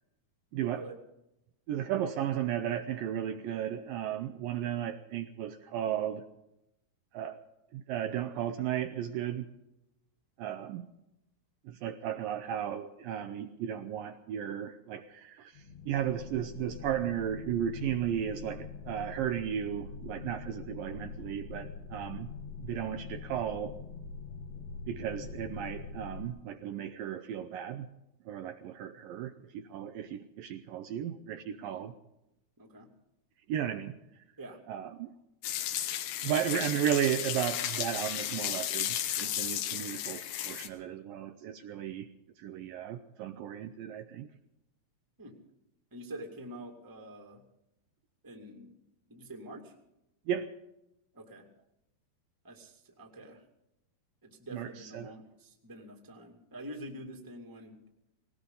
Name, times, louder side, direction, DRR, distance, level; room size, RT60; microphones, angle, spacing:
voice 1, 0.5-0.8 1.7-6.3 7.1-7.5 7.7-9.5 10.4-10.9 11.7-22.3 22.6-23.8 24.9-27.9 28.3-31.9 33.5-33.9 34.7-35.1 36.2-42.1 42.4-44.3 50.3-50.5 54.5-55.1, right 10 dB, 75° right, 7 dB, 2.2 m, -34 dB
sound 1, 15.5-26.3, left 5 dB, 60° left, 1.9 m, -44 dB
voice 2, 32.6-32.9 34.4-34.6 45.2-45.4 45.9-47.4 48.2-48.7 49.1-49.7 51.1-51.5 52.4-53.4 54.2-57.8, right 1 dB, 10° right, 2 dB, 1.5 m, -46 dB
sound 2, 35.4-40.7, left 11 dB, 85° left, 3.2 m, -34 dB
19.5 x 18.5 x 3.9 m, 0.87 s
omnidirectional pair, 4.5 m